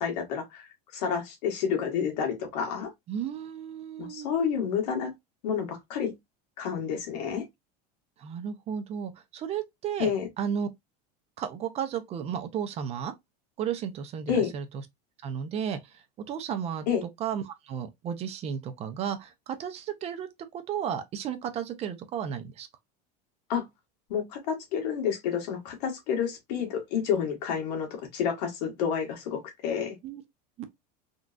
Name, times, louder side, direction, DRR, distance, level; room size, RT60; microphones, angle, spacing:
voice 1, 0.0-2.9 4.0-5.1 5.4-6.1 6.6-7.4 10.0-10.3 14.3-14.5 16.9-17.0 23.5-23.6 24.1-29.9, left 7 dB, 80° left, 1.7 m, -29 dB
voice 2, 3.1-4.3 8.2-10.1 10.4-10.7 11.4-13.1 13.6-14.8 15.2-20.3 20.5-22.7 30.0-30.2 30.6-30.7, right 8 dB, 30° right, 0.5 m, -33 dB
3.7 x 2.3 x 2.4 m
supercardioid pair, 145°, 21 cm